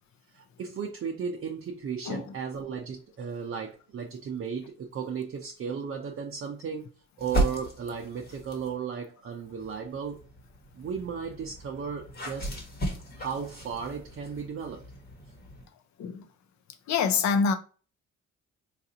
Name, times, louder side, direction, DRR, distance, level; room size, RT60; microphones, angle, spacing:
voice 1, 0.3-6.9 7.2-10.2 10.7-12.5 13.2-14.9, right 6 dB, 45° right, 0.6 m, -35 dB
sound 1, 7.2-8.8 9.4-15.7, right 1 dB, 30° left, 1.2 m, -35 dB
voice 2, 16.9-17.5, left 5 dB, 65° left, 0.6 m, -25 dB
4.0 x 2.5 x 2.7 m
cardioid pair, 90°, 30 cm